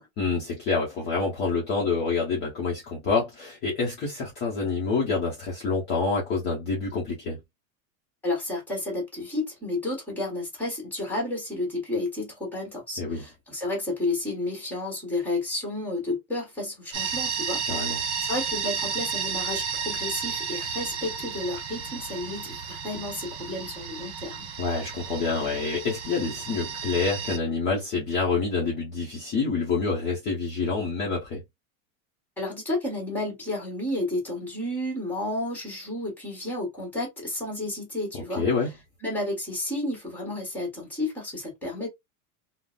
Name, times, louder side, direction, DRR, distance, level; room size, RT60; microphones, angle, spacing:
voice 1, 0.2-7.4 13.0-13.2 17.7-18.0 24.6-31.4 38.4-38.7, left 4 dB, 25° left, 0.7 m, -27 dB
voice 2, 8.2-24.5 32.4-38.5 39.0-41.9, left 2 dB, 5° left, 1.1 m, -31 dB
sound 1, 16.9-27.4, right 6 dB, 55° right, 1.0 m, -32 dB
3.7 x 2.1 x 2.3 m
supercardioid pair, 170°, 43 cm